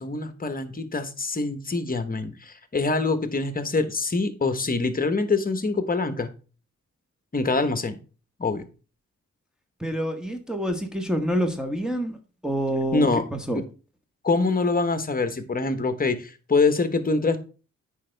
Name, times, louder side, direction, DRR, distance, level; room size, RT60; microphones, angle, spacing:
voice 1, 0.0-6.3 7.3-8.0 8.4-8.6 12.9-13.2 13.5-13.6 14.2-17.4, left 3 dB, 30° left, 10 dB, 1.1 m, -25 dB
voice 2, 9.8-12.2 12.4-13.6, equal, ahead, 2 dB, 1.2 m, -27 dB
8.4 x 5.4 x 3.4 m, 0.35 s
cardioid pair, 75°, 30 cm